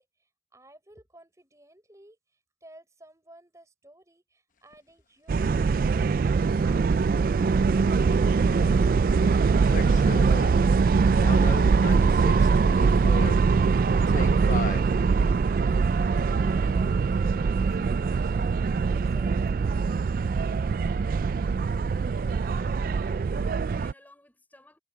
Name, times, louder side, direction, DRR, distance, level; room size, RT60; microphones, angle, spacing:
voice 1, 0.0-2.2 2.6-6.0 6.6-9.3 9.8-13.1 13.6-15.9 16.2-20.1, right 1 dB, 15° right, 5.4 m, -54 dB
sound 1, 4.7-4.8 9.6-10.6 11.1-13.4 14.1-14.8 15.7-15.8, left 3 dB, 45° left, 1.0 m, -35 dB
sound 2, 5.3-23.9, right 5 dB, 50° right, 0.3 m, -22 dB
voice 2, 22.2-24.8, left 1 dB, 10° left, 5.0 m, -57 dB
head